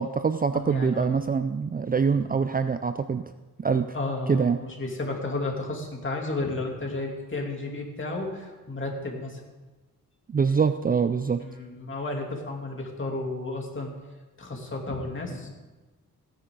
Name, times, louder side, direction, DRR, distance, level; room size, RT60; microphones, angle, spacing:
voice 1, 0.0-3.2 3.6-4.0 4.3-4.6 10.3-11.4, right 5 dB, 25° right, 10 dB, 0.4 m, -24 dB
voice 2, 0.5-1.2 3.9-9.4 11.4-13.9 14.4-15.5, left 2 dB, 35° left, 0 dB, 2.7 m, -32 dB
16.0 x 10.0 x 3.8 m, 1.2 s
cardioid pair, 90°, 35 cm